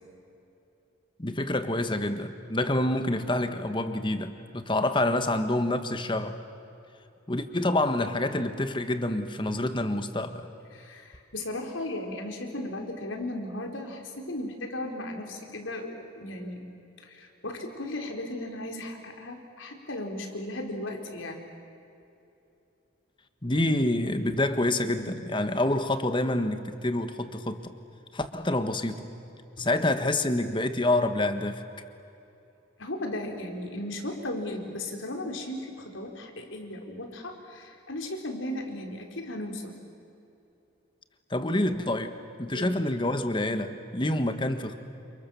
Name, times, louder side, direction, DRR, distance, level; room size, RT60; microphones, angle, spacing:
voice 1, 1.2-6.3 7.3-10.5 23.4-27.7 28.1-29.1 29.6-31.6 41.3-44.8, left 1 dB, 25° left, 9 dB, 1.5 m, -27 dB
voice 2, 10.7-16.6 17.0-21.4 29.6-29.7 32.8-39.7 42.5-42.8, left 1 dB, 80° left, 3 dB, 4.1 m, -36 dB
29.5 x 28.5 x 7.2 m, 2.8 s
head